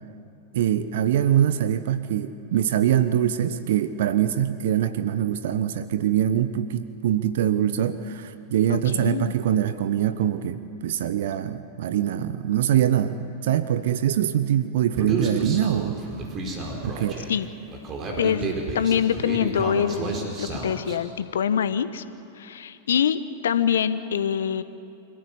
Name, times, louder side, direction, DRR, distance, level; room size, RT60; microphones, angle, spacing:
voice 1, 0.5-16.0 16.8-17.1, right 10 dB, 65° right, 12 dB, 0.9 m, -23 dB
voice 2, 8.7-9.3 17.3-17.5 18.2-22.0 22.4-24.6, left 8 dB, 70° left, 13 dB, 1.1 m, -25 dB
Human voice, 15.0-21.0, right 3 dB, 35° right, 4.7 m, -31 dB
26.5 x 14.5 x 9.8 m, 2.7 s
figure-of-eight pair, 95°, 0 cm